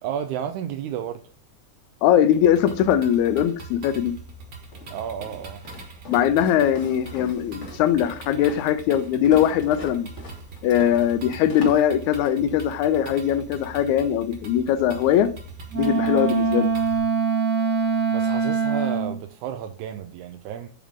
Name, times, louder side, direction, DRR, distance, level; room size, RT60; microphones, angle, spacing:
voice 1, 0.0-1.2 4.9-5.6 18.1-20.7, right 9 dB, 80° right, 2.0 m, -32 dB
voice 2, 2.0-4.1 6.1-10.1 10.6-15.3 15.7-16.7, left 10 dB, 80° left, 1.9 m, -21 dB
sound 1, 2.3-17.0, right 3 dB, 45° right, 1.8 m, -42 dB
Walk footsteps, 4.7-12.5, equal, 40° left, 1.1 m, -42 dB
Wind instrument woodwind instrument, 15.7-19.2, right 5 dB, 65° right, 1.0 m, -23 dB
8.3 x 3.7 x 3.5 m
omnidirectional pair, 3.5 m